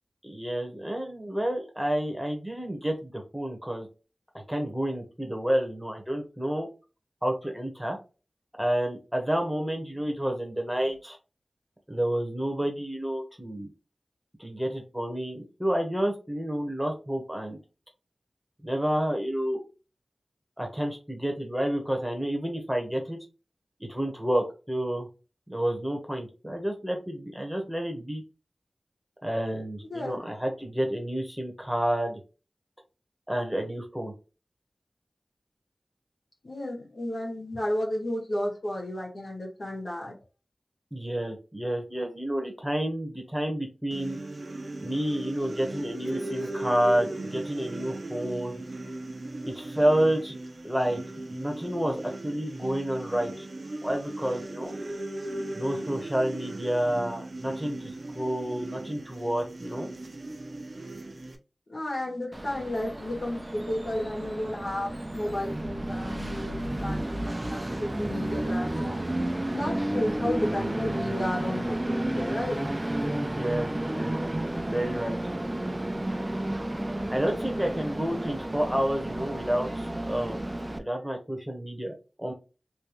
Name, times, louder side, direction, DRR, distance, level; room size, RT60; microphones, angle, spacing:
voice 1, 0.2-3.9 4.5-6.7 7.2-8.0 8.6-11.2 11.9-13.7 14.4-17.6 18.6-19.6 20.6-23.2 23.8-25.1 25.5-28.2 29.2-32.2 33.3-34.1 40.9-44.2 44.8-48.6 49.4-50.4 50.6-51.0 51.3-53.5 53.8-54.7 55.5-59.9 73.2-74.1 74.5-75.2 77.1-80.4 80.8-81.9 82.2-82.3, right 1 dB, 5° right, 1.0 m, -29 dB
voice 2, 29.9-30.2 36.4-40.1 61.7-69.0 69.5-72.6, left 1 dB, 70° left, 1.7 m, -32 dB
sound 1, 43.9-61.4, right 2 dB, 60° right, 0.7 m, -37 dB
Train, 62.3-80.8, right 1 dB, 25° right, 0.4 m, -32 dB
3.3 x 3.0 x 2.9 m
wide cardioid pair, 75°, 0 cm